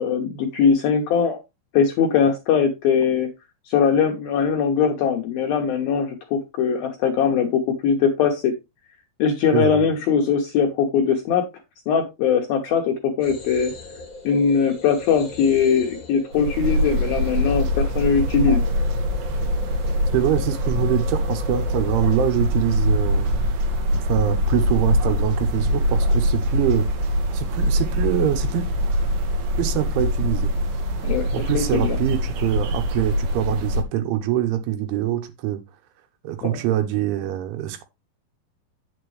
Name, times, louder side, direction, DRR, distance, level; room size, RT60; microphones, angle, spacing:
voice 1, 0.0-1.4 1.7-3.3 3.7-8.5 9.2-11.4 11.9-13.7 14.2-18.6 31.0-32.0 36.5-36.6, left 6 dB, 80° left, 2.2 m, -21 dB
voice 2, 9.5-9.8 20.1-23.5 23.9-26.9 27.3-28.7 29.6-30.5 31.3-35.6 36.2-37.8, right 12 dB, 85° right, 3.5 m, -24 dB
sound 1, 13.2-22.2, left 3 dB, 60° left, 0.8 m, -39 dB
sound 2, 16.3-33.8, equal, 65° right, 2.5 m, -23 dB
9.0 x 7.3 x 3.2 m
omnidirectional pair, 5.4 m